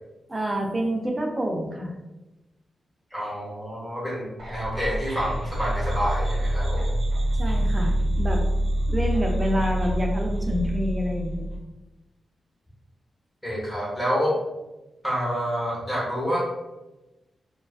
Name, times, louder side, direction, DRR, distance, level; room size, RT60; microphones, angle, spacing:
voice 1, 0.3-1.9 7.4-8.4 8.9-11.5, equal, 20° right, 1 dB, 0.4 m, -27 dB
voice 2, 3.1-6.9 13.4-14.3 15.0-16.4, equal, 10° left, -6 dB, 0.8 m, -28 dB
sound 1, 4.4-11.6, equal, 75° right, 0.8 m, -26 dB
2.3 x 2.3 x 2.3 m, 1.0 s
wide cardioid pair, 130°, 0 cm